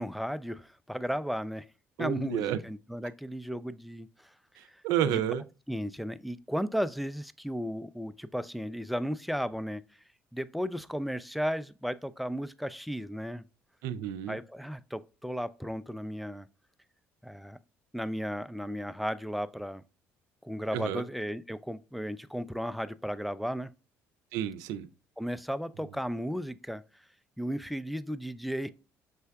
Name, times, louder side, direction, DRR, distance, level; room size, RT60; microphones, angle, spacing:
voice 1, 0.0-1.7 2.0-4.3 4.7-4.8 5.1-5.2 5.7-9.8 10.3-13.4 14.3-16.5 17.2-17.6 17.9-19.8 20.4-23.7 25.2-26.8 27.4-28.7, equal, ahead, 0.3 m, -34 dB
voice 2, 2.0-2.6 4.6-5.4 13.8-14.4 20.7-21.0 24.3-24.9, right 10 dB, 80° right, 0.4 m, -30 dB
5.5 x 3.3 x 2.3 m
supercardioid pair, 80°, 6 cm